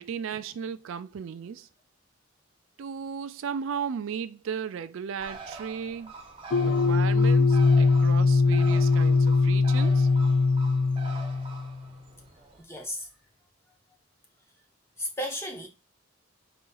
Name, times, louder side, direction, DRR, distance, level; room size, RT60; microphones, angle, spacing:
voice 1, 0.0-1.7 2.8-6.1 6.6-10.1, right 7 dB, 75° right, 0.4 m, -35 dB
Bird, 5.2-12.6, right 3 dB, 25° right, 0.6 m, -45 dB
sound 1, 6.5-11.7, left 4 dB, 90° left, 0.5 m, -21 dB
voice 2, 12.6-13.1 15.0-15.7, left 1 dB, 10° left, 0.7 m, -34 dB
4.0 x 2.5 x 3.8 m
head